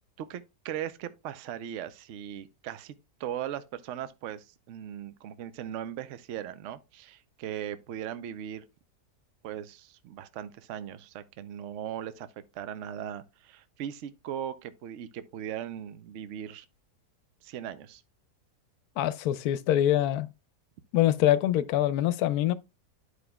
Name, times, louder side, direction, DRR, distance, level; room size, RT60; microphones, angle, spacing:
voice 1, 0.2-8.6 9.4-12.3 12.5-16.7 17.4-18.0, right 10 dB, 60° right, 0.8 m, -38 dB
voice 2, 19.0-20.3 20.9-22.5, left 12 dB, 75° left, 1.0 m, -24 dB
12.5 x 4.9 x 2.3 m
omnidirectional pair, 1.7 m